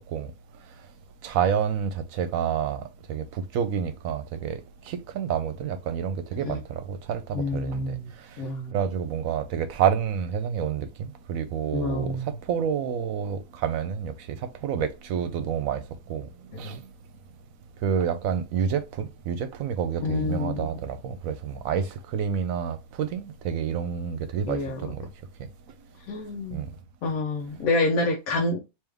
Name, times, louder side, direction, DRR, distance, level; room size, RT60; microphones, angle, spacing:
voice 1, 1.2-16.3 16.6-16.9 17.8-25.1 26.5-26.7, right 8 dB, 75° right, 1.0 m, -29 dB
voice 2, 7.3-8.1 8.4-8.7 11.7-12.3 16.5-16.8 20.0-20.7 24.5-24.8 26.1-26.6 27.0-28.7, left 2 dB, 80° left, 1.2 m, -28 dB
3.4 x 3.1 x 3.4 m
omnidirectional pair, 1.5 m